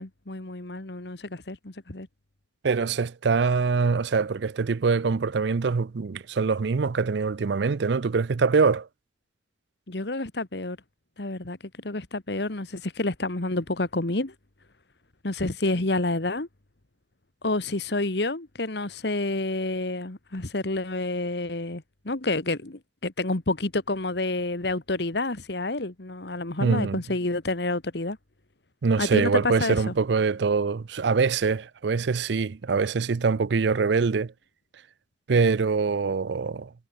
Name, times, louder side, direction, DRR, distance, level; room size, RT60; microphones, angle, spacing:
voice 1, 0.0-2.1 9.9-10.8 11.2-11.6 11.8-14.3 15.2-16.5 17.4-28.2 29.0-29.9, left 2 dB, 60° left, 1.6 m, -29 dB
voice 2, 2.6-8.9 26.6-27.0 28.8-34.3 35.3-36.9, right 4 dB, 65° right, 0.5 m, -24 dB
head